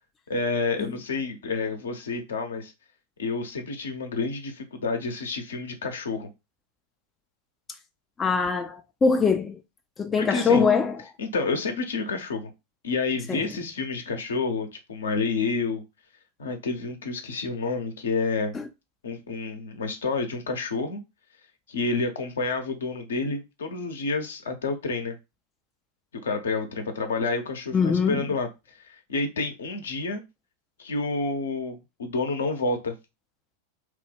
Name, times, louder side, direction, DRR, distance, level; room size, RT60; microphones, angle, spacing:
voice 1, 0.3-2.7 3.2-6.3 10.1-10.6 11.2-12.5 12.8-15.8 16.4-18.6 19.0-21.0 21.7-25.1 26.2-28.5 28.8-30.2 30.8-32.9, left 3 dB, 65° left, 0.6 m, -29 dB
voice 2, 8.2-9.6 10.0-11.0 13.3-13.4 27.7-28.2, left 5 dB, 15° left, 0.3 m, -22 dB
3.1 x 2.1 x 3.3 m
figure-of-eight pair, 90°, 0 cm